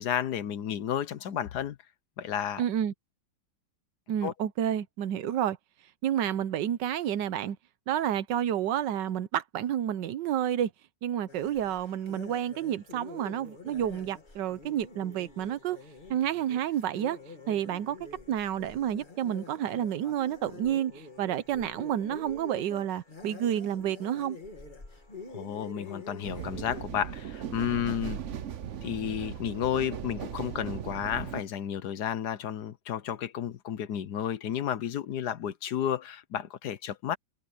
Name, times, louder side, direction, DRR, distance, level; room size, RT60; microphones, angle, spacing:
voice 1, 0.0-1.8 2.2-2.6 4.2-4.3 25.3-28.2 28.8-37.2, left 9 dB, 65° left, 1.3 m, -32 dB
voice 2, 2.6-2.9 4.1-5.6 6.0-7.6 7.9-10.7 11.0-15.8 16.1-17.2 17.5-18.0 18.3-24.4, right 10 dB, 75° right, 1.4 m, -30 dB
sound 1, 11.3-26.8, left 3 dB, 25° left, 2.1 m, -47 dB
sound 2, 26.2-31.4, right 9 dB, 50° right, 1.0 m, -38 dB
omnidirectional pair, 2.0 m